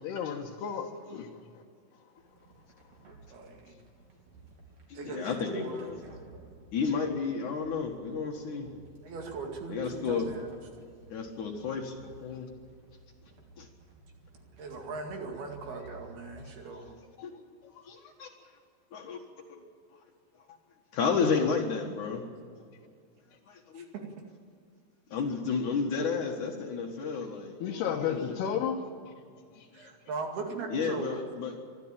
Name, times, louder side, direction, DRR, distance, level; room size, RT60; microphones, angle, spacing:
voice 1, 0.0-1.6 2.0-2.1 17.2-17.3 17.6-17.9 27.6-29.1 29.5-29.9, left 7 dB, 80° left, -2 dB, 3.2 m, -34 dB
sound 1, 2.2-16.5, right 2 dB, 45° right, 4.1 m, -55 dB
voice 2, 3.3-3.8 4.9-5.9 9.0-10.5 14.6-17.0 23.7-24.1 29.7-31.2, right 4 dB, 70° right, 2 dB, 4.1 m, -39 dB
voice 3, 4.9-6.0 6.7-8.8 9.7-10.3 11.1-12.5 13.6-13.7 17.2-17.4 17.9-18.3 18.9-19.2 20.9-22.2 23.5-23.9 25.1-28.4 30.7-31.5, left 5 dB, 55° left, 2 dB, 2.7 m, -32 dB
24.0 x 13.5 x 8.9 m, 2.2 s
omnidirectional pair, 4.8 m